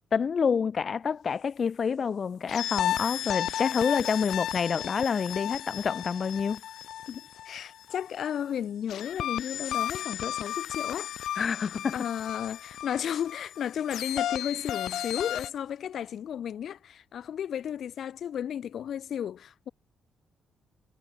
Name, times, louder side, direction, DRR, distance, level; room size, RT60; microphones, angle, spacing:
voice 1, 0.1-6.6 11.4-12.0, left 6 dB, 40° left, 6.6 m, -28 dB
sound 1, 2.5-8.1 8.9-15.5, left 11 dB, 75° left, 2.4 m, -34 dB
voice 2, 7.1-11.1 11.9-19.7, left 9 dB, 60° left, 6.0 m, -34 dB
cardioid pair, 130°, 0 cm